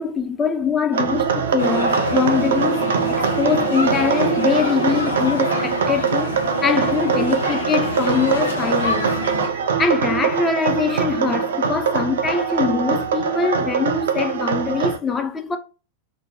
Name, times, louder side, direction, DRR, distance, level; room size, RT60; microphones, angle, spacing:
voice 1, 0.0-9.1 9.4-15.6, left 6 dB, 20° left, 0.4 m, -23 dB
sound 1, 0.9-15.0, right 7 dB, 60° right, 0.3 m, -23 dB
sound 2, 1.6-9.5, left 2 dB, 85° left, 0.9 m, -26 dB
2.5 x 2.0 x 2.8 m
figure-of-eight pair, 90°, 0 cm